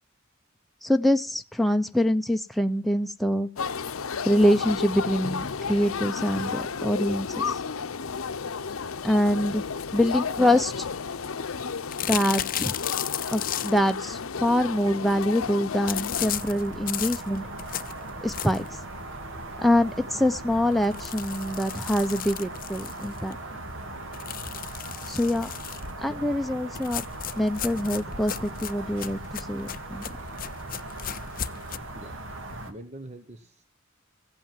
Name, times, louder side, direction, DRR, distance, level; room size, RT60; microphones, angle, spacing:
voice 1, 0.8-3.5 4.2-7.6 9.0-9.6 9.9-10.8 12.1-12.8 13.3-17.5 18.2-18.7 19.6-23.4 25.1-25.5 26.0-27.1 27.3-30.0, left 1 dB, ahead, 6 dB, 0.8 m, -25 dB
sound 1, 3.6-16.3, left 5 dB, 85° left, 0.8 m, -32 dB
sound 2, 11.9-14.0 15.9-18.8 19.2-19.3 19.7-19.8 20.1-20.2 20.8-23.3 24.1-25.9 26.7-31.8, left 11 dB, 45° left, 0.6 m, -35 dB
sound 3, 16.1-32.7, right 2 dB, 65° right, 2.3 m, -39 dB
voice 2, 32.6-33.6, right 1 dB, 35° right, 7 dB, 1.3 m, -44 dB
15.5 x 8.5 x 7.6 m, 0.36 s
head